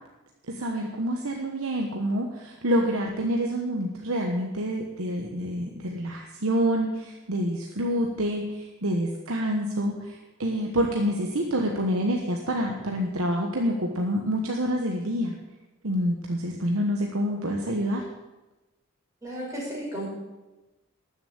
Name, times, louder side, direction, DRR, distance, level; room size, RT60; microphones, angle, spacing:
voice 1, 0.5-15.4 15.8-18.0, equal, 65° right, 2 dB, 1.2 m, -27 dB
voice 2, 19.2-20.1, right 1 dB, 15° right, -6 dB, 5.8 m, -33 dB
13.0 x 7.1 x 8.8 m, 1.1 s
head